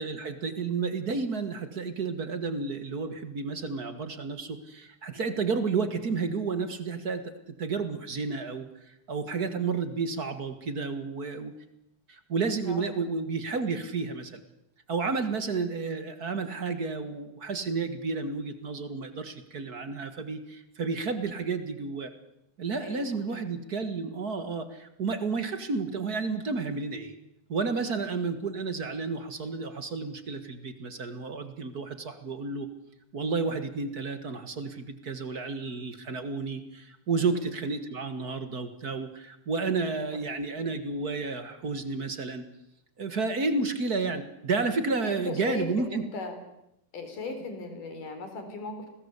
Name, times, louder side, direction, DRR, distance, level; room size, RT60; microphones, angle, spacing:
voice 1, 0.0-11.5 12.1-14.4 14.9-22.1 22.6-27.1 27.5-32.7 33.1-42.4 43.0-46.0, right 4 dB, 35° right, 10 dB, 1.7 m, -31 dB
voice 2, 22.8-23.4 27.8-28.0 37.2-37.4 45.0-46.4 46.9-48.9, left 3 dB, 90° left, 7 dB, 5.8 m, -38 dB
29.5 x 20.0 x 8.2 m, 0.83 s
omnidirectional pair, 3.6 m